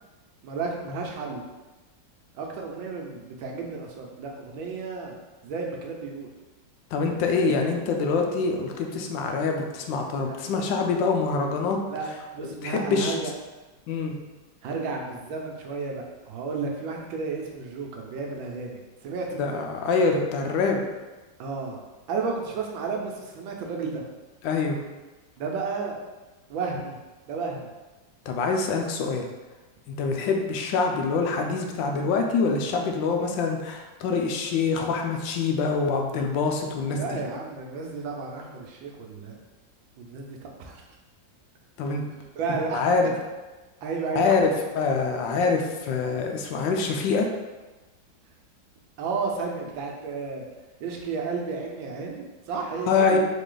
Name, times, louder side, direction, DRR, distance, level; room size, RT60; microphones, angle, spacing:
voice 1, 0.4-1.4 2.3-5.1 5.4-6.3 10.3-10.4 11.9-13.3 14.6-19.4 21.4-21.8 22.1-24.0 25.4-26.0 26.5-27.0 27.3-27.7 30.0-30.3 36.9-39.4 40.0-40.8 42.3-42.8 43.8-44.5 49.0-50.4 50.8-53.2, right 4 dB, 90° right, 1 dB, 1.5 m, -32 dB
voice 2, 6.9-11.8 12.4-13.1 13.9-14.1 19.4-20.8 24.4-24.8 28.3-29.3 30.0-37.1 41.8-42.0 42.7-43.1 44.2-47.3 52.9-53.2, left 4 dB, 80° left, 2 dB, 1.3 m, -25 dB
4.0 x 3.2 x 3.8 m, 1.2 s
omnidirectional pair, 2.1 m